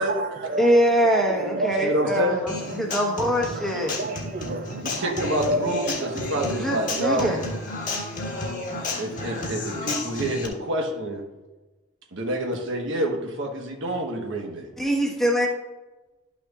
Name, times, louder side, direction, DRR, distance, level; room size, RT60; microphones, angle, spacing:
voice 1, 0.0-0.7 1.0-2.1 2.6-2.8 3.1-6.3, right 2 dB, 45° right, 0.5 m, -31 dB
voice 2, 0.6-4.0 6.5-7.4 14.8-15.5, equal, ahead, 1.1 m, -23 dB
voice 3, 1.8-2.4 4.8-7.3 9.0-11.2 12.1-14.7, right 1 dB, 60° right, 1.2 m, -27 dB
Human voice / Acoustic guitar, 2.5-10.5, left 2 dB, 40° left, 1.5 m, -32 dB
12.0 x 5.9 x 2.4 m
head